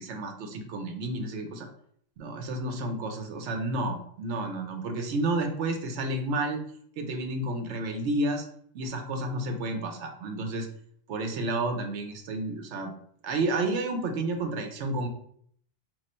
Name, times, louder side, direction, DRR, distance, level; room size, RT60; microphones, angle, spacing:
voice 1, 0.0-1.7 2.2-6.6 7.0-8.5 8.7-10.7 11.1-12.9 13.2-15.1, right 2 dB, 80° right, 5 dB, 1.0 m, -31 dB
3.1 x 2.4 x 4.2 m, 0.64 s
omnidirectional pair, 1.2 m